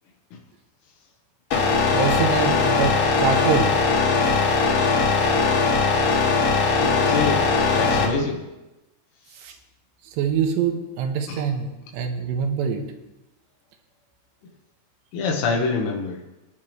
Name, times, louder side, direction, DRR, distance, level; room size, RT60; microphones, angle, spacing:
sound 1, 1.5-8.1, left 4 dB, 50° left, 3.8 m, -20 dB
voice 1, 1.9-3.7 9.4-9.5 10.2-12.8, right 7 dB, 70° right, 4 dB, 3.0 m, -24 dB
voice 2, 6.8-7.4 7.7-8.4 11.3-11.4 15.1-16.2, left 4 dB, 85° left, 0 dB, 4.1 m, -25 dB
24.5 x 10.5 x 3.2 m, 0.97 s
omnidirectional pair, 5.9 m